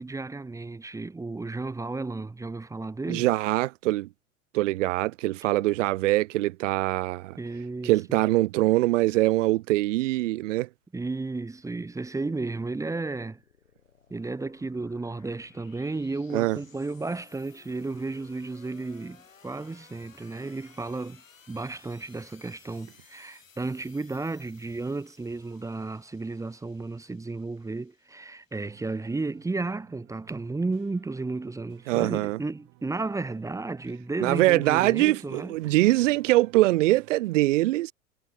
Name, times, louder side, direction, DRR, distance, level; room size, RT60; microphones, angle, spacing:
voice 1, 0.0-3.3 7.4-7.9 10.9-13.4 14.1-21.2 21.5-35.7, right 3 dB, 10° right, 0.9 m, -33 dB
voice 2, 3.1-4.1 4.5-7.4 7.8-10.7 16.3-16.6 31.9-32.4 34.2-37.9, right 18 dB, 70° right, 0.5 m, -23 dB
sound 1, 10.8-29.4, left 6 dB, 85° left, 5.9 m, -58 dB
sound 2, 28.6-37.1, right 26 dB, 50° right, 5.1 m, -57 dB
figure-of-eight pair, 85°, 38 cm